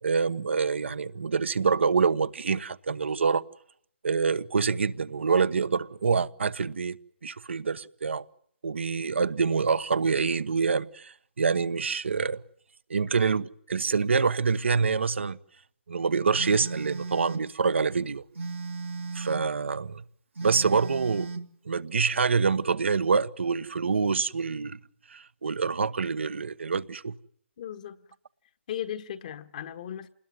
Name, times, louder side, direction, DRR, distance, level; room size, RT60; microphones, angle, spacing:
voice 1, 0.0-3.4 4.0-7.0 7.2-8.2 8.6-12.4 12.9-15.4 15.9-18.2 19.1-20.0 20.4-21.3 21.6-24.8 25.1-27.1, right 5 dB, 70° right, 1.2 m, -26 dB
Telephone, 16.4-17.5 18.4-19.5 20.4-21.5, right 4 dB, 85° right, 2.4 m, -36 dB
voice 2, 27.6-28.0 28.7-30.1, left 10 dB, 40° left, 1.5 m, -36 dB
27.5 x 20.5 x 9.5 m
hypercardioid pair, 155°, 7 cm